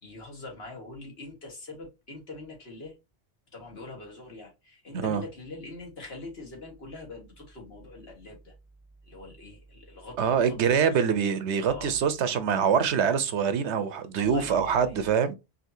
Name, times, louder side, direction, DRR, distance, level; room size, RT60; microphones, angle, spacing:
voice 1, 0.0-2.9 3.5-8.5 9.0-10.8 11.6-11.9 14.2-15.1, left 2 dB, 65° left, 1.9 m, -43 dB
voice 2, 10.2-15.3, right 7 dB, 90° right, 1.0 m, -24 dB
4.8 x 2.8 x 2.7 m
omnidirectional pair, 1.1 m